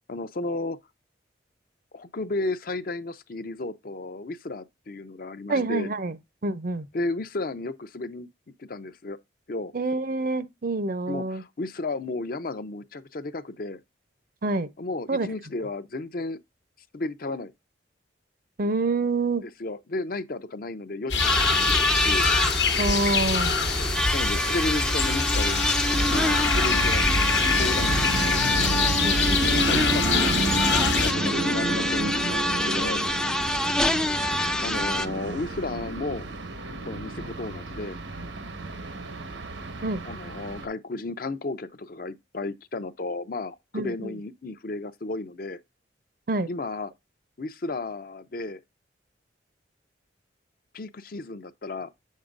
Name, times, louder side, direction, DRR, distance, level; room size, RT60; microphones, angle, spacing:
voice 1, 0.1-0.8 1.9-5.9 6.9-8.3 8.6-9.2 9.5-9.7 11.1-13.8 14.8-16.4 16.9-17.5 19.4-22.3 24.1-25.7 26.0-27.2 27.6-28.4 29.7-30.3 30.7-33.0 34.2-36.3 36.9-38.0 40.0-45.6 46.5-46.9 47.4-48.6 50.7-51.9, left 2 dB, 50° left, 0.6 m, -33 dB
voice 2, 5.5-6.1 6.4-6.9 9.7-11.4 14.4-14.7 15.1-15.3 18.6-19.4 22.8-23.5 29.0-29.4 39.8-40.0 43.7-44.1 46.3-46.5, right 3 dB, 50° right, 0.6 m, -27 dB
sound 1, 21.1-31.1, left 4 dB, 75° left, 1.0 m, -25 dB
sound 2, 21.2-35.1, left 1 dB, 5° left, 0.4 m, -26 dB
sound 3, 25.9-40.7, right 2 dB, 90° right, 1.2 m, -32 dB
7.8 x 6.4 x 2.5 m
head